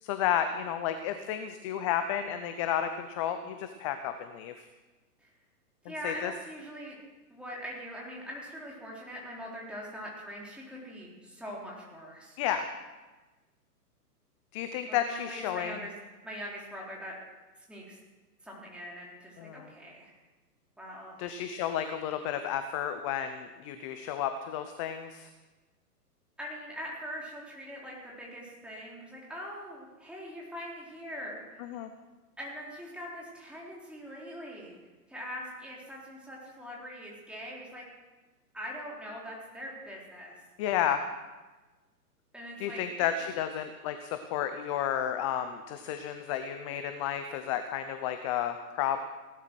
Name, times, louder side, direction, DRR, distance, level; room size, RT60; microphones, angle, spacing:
voice 1, 0.0-4.7 6.0-6.3 12.4-12.7 14.5-15.7 19.4-19.7 21.2-25.3 31.6-31.9 40.6-41.0 42.6-49.0, left 10 dB, 20° left, 9 dB, 0.5 m, -32 dB
voice 2, 5.8-7.0 7.3-12.4 14.9-15.9 16.2-17.1 17.6-18.0 18.4-20.2 20.8-21.2 26.4-31.8 32.4-34.8 35.1-37.8 38.5-40.3 42.3-43.1, equal, ahead, -4 dB, 3.9 m, -42 dB
17.5 x 12.0 x 6.1 m, 1.2 s
hypercardioid pair, 125°, 48 cm